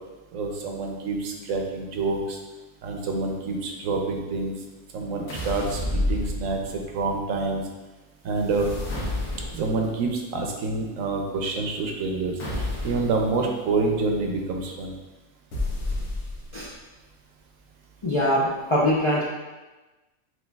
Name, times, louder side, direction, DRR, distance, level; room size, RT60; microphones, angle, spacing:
voice 1, 0.3-2.4 2.8-4.5 4.9-7.6 8.2-8.7 9.5-14.9, right 3 dB, 80° right, 2 dB, 1.0 m, -27 dB
sound 1, 5.3-6.9 8.3-9.9 12.4-13.2 15.5-16.6, left 1 dB, 90° left, 1.3 m, -30 dB
voice 2, 18.0-19.2, equal, 50° left, -7 dB, 0.3 m, -23 dB
6.2 x 2.6 x 2.3 m, 1.1 s
omnidirectional pair, 1.4 m